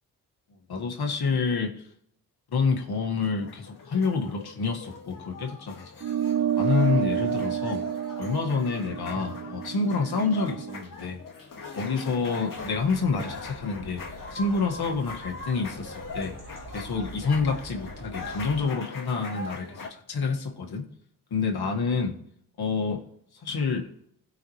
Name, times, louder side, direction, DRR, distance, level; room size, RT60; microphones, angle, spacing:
voice 1, 0.7-1.8 2.5-6.0 6.6-7.8 8.2-11.2 11.8-14.0 14.3-16.3 16.7-20.8 21.3-22.1 22.6-23.0 23.4-23.9, left 4 dB, 75° left, 1 dB, 1.8 m, -28 dB
sound 1, 2.9-19.9, left 4 dB, 55° left, 2.0 m, -41 dB
sound 2, 6.0-10.8, right 9 dB, 50° right, 0.7 m, -29 dB
sound 3, 12.5-18.7, right 2 dB, 70° right, 3.2 m, -45 dB
16.5 x 5.8 x 3.2 m, 0.72 s
cardioid pair, 55°, 39 cm